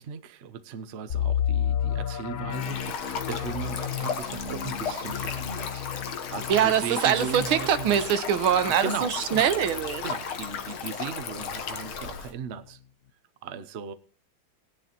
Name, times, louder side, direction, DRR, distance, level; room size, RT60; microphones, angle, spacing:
voice 1, 0.0-7.9 8.8-9.5 10.0-12.8 13.4-13.9, right 6 dB, 55° right, 0.7 m, -37 dB
sound 1, 1.1-10.8 11.2-11.3 11.8-12.0, left 9 dB, 55° left, 1.1 m, -33 dB
Stream, 2.5-12.3, left 6 dB, 85° left, 2.2 m, -35 dB
voice 2, 6.5-10.0, right 9 dB, 85° right, 1.9 m, -23 dB
18.0 x 10.5 x 3.0 m
omnidirectional pair, 2.2 m